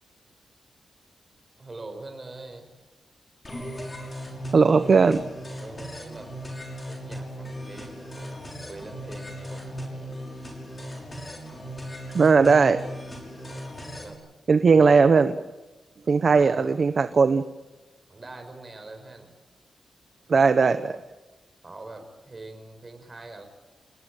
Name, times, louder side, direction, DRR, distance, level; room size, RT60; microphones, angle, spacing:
voice 1, 1.6-2.7 5.6-6.3 6.9-10.1 13.9-14.2 16.3-16.8 18.1-19.3 21.6-23.4, right 2 dB, 25° right, 6 dB, 5.5 m, -43 dB
sound 1, 3.4-14.1, equal, 20° left, 6.0 m, -37 dB
voice 2, 4.5-5.2 12.1-12.8 14.5-15.3 16.1-17.4 20.3-21.0, right 5 dB, 45° right, 10 dB, 1.0 m, -18 dB
29.0 x 19.0 x 9.2 m, 1.1 s
wide cardioid pair, 145°, 0 cm